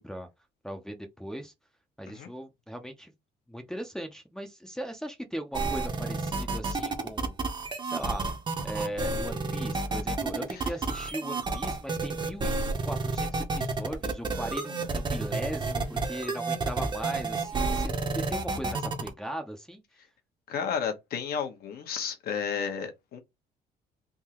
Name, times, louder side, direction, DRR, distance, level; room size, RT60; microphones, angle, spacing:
voice 1, 0.6-1.5 2.0-3.1 3.5-7.4 7.8-8.2 8.6-19.8, equal, 5° left, 0.6 m, -38 dB
sound 1, 5.5-19.1, right 3 dB, 25° right, 0.8 m, -30 dB
voice 2, 20.5-23.2, left 7 dB, 65° left, 1.1 m, -32 dB
3.7 x 2.7 x 3.0 m
cardioid pair, 110°, 17 cm